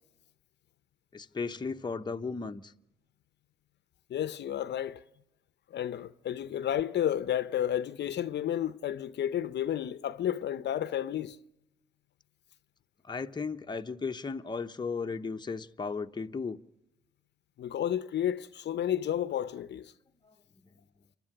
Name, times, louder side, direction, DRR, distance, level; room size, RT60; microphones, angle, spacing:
voice 1, 1.1-2.7 13.0-16.6 20.2-20.3, left 4 dB, 20° left, 0.9 m, -35 dB
voice 2, 4.1-5.0 5.7-11.4 17.6-19.9, left 10 dB, 60° left, 0.7 m, -31 dB
27.5 x 12.0 x 10.0 m
cardioid pair, 90°, 20 cm